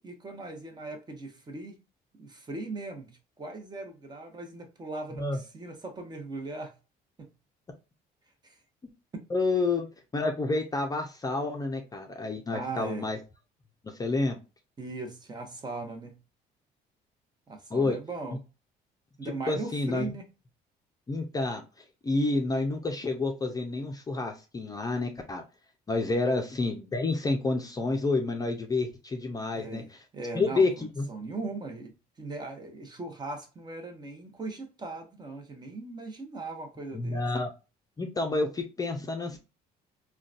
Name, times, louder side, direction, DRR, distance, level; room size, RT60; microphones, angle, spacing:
voice 1, 0.0-1.8 2.2-3.1 3.4-6.7 7.2-7.3 8.4-8.6 9.1-9.3 12.5-13.1 14.8-16.2 17.5-18.4 19.2-20.3 26.2-26.3 29.5-29.9 30.1-37.3, right 3 dB, 25° right, 0.8 m, -39 dB
voice 2, 9.3-9.9 10.1-13.2 13.8-14.4 17.7-18.0 19.5-20.1 21.1-21.6 22.0-25.4 25.9-30.0 30.3-31.0 36.9-37.5 38.0-39.4, left 3 dB, 20° left, 0.5 m, -29 dB
3.7 x 2.3 x 2.4 m
cardioid pair, 110°, 17 cm